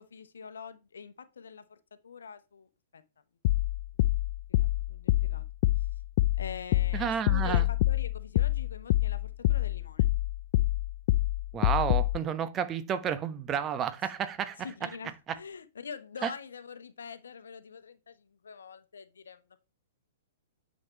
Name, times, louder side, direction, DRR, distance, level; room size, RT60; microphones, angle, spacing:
voice 1, 0.0-1.8 2.0-3.0 4.5-5.4 6.4-10.1 14.6-19.4, left 6 dB, 70° left, 1.0 m, -45 dB
sound 1, 3.4-12.2, left 16 dB, 45° left, 0.3 m, -26 dB
voice 2, 6.9-7.7 11.5-15.0 15.3-15.4 16.2-16.3, right 8 dB, 25° right, 1.0 m, -31 dB
9.7 x 6.5 x 3.0 m
figure-of-eight pair, 110°, 0 cm